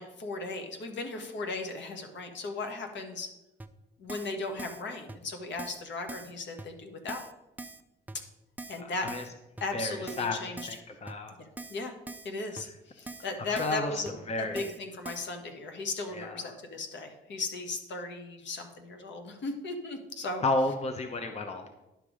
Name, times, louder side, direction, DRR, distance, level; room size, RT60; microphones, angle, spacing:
voice 1, 0.0-3.3 4.0-7.2 8.7-9.1 9.6-10.8 11.4-11.9 12.2-14.1 14.4-20.4, left 3 dB, 65° left, 4 dB, 1.5 m, -37 dB
Keyboard (musical), 3.6-3.7 4.1-4.3 4.6-4.8 5.1-5.2 5.6-5.8 6.1-6.3 6.6-6.7 7.1-7.3 7.6-7.8 8.1-8.2 8.6-8.8 9.1-9.3 9.6-9.7 10.1-10.3 10.6-10.8 11.1-11.2 11.6-11.8 12.1-12.3 12.6-12.7 13.1-13.3 13.6-13.8 14.1-14.2 14.6-14.8 15.0-15.3, right 2 dB, 10° right, 0.6 m, -43 dB
voice 2, 8.8-9.2 9.7-10.4 10.7-11.3 13.5-14.7 16.1-16.4 20.4-21.7, left 2 dB, 30° left, 6 dB, 0.9 m, -32 dB
10.5 x 5.4 x 5.0 m, 0.97 s
cardioid pair, 90°, 20 cm